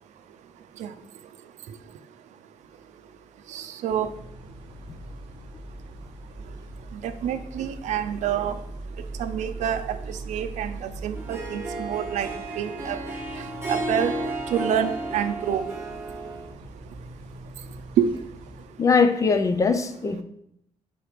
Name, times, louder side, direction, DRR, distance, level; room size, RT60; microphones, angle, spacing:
voice 1, 3.5-4.1 7.0-8.6 9.2-12.3 12.6-13.0 13.7-14.1 14.5-15.6 18.0-18.1, right 9 dB, 85° right, 0.5 m, -27 dB
sound 1, 3.9-18.7, right 2 dB, 40° right, 1.5 m, -41 dB
Harp, 11.1-16.5, right 2 dB, 20° right, 1.3 m, -32 dB
voice 2, 18.8-20.2, left 4 dB, 25° left, 0.4 m, -21 dB
4.7 x 4.3 x 5.0 m
cardioid pair, 150°, 12 cm